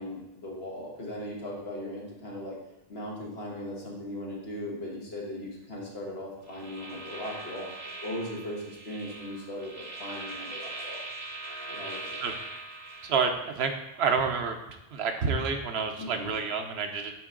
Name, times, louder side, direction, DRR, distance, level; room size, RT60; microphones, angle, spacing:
voice 1, 0.0-2.6 2.9-7.7 8.0-11.0 11.7-12.2 16.0-16.3, left 1 dB, 75° left, -3 dB, 1.8 m, -38 dB
sound 1, 6.5-13.2, right 2 dB, 20° right, 0.8 m, -41 dB
voice 2, 13.0-14.6 14.9-17.1, right 5 dB, 80° right, 5 dB, 1.0 m, -28 dB
8.9 x 3.7 x 3.8 m, 0.89 s
omnidirectional pair, 1.1 m